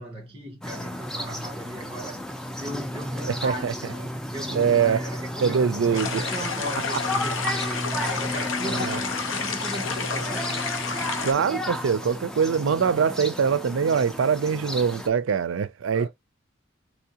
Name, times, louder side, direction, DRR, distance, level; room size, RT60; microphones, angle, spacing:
voice 1, 0.0-2.3 2.6-10.6 15.9-16.1, right 1 dB, 30° right, 1.2 m, -37 dB
sound 1, 0.6-15.1, equal, 5° left, 0.4 m, -33 dB
voice 2, 3.3-3.7 4.5-5.0 5.4-6.2 8.6-9.0 11.2-16.1, right 6 dB, 80° right, 0.4 m, -23 dB
sound 2, 5.9-11.3, left 5 dB, 80° left, 0.7 m, -30 dB
3.5 x 3.3 x 2.8 m
head